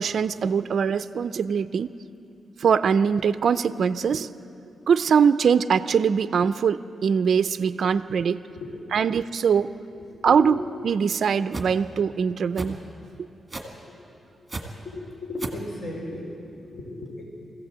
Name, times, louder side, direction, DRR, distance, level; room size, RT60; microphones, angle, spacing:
voice 1, 0.0-1.9 2.6-4.3 4.9-8.4 8.9-9.7 10.2-10.6 10.8-12.8, right 6 dB, 55° right, 12 dB, 0.4 m, -22 dB
voice 2, 8.2-9.1 10.1-10.6 13.9-14.0 14.8-17.2, left 2 dB, 50° left, -2 dB, 3.8 m, -36 dB
sound 1, 11.5-11.7 12.6-12.8 13.5-13.8 14.5-14.6 15.4-15.6, right 2 dB, 15° right, 1.8 m, -32 dB
21.5 x 15.5 x 7.9 m, 2.7 s
wide cardioid pair, 160°, 0 cm